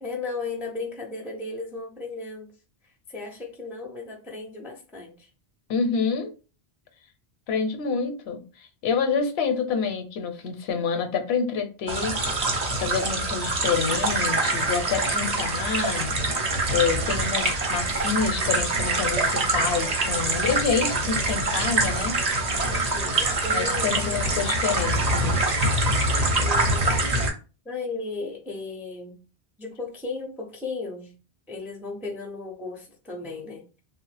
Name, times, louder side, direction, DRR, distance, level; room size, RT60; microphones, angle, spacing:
voice 1, 0.0-2.5 2.8-5.3 22.7-24.2 26.4-26.9 27.6-29.2 29.6-31.2 31.5-33.8, left 3 dB, 5° right, 0.3 m, -35 dB
voice 2, 5.7-6.3 7.5-12.2 12.8-16.4 16.7-22.2 23.5-25.5, left 6 dB, 75° left, 0.8 m, -27 dB
sound 1, 11.9-27.3, right 2 dB, 45° right, 0.7 m, -25 dB
2.8 x 2.0 x 3.2 m
omnidirectional pair, 1.1 m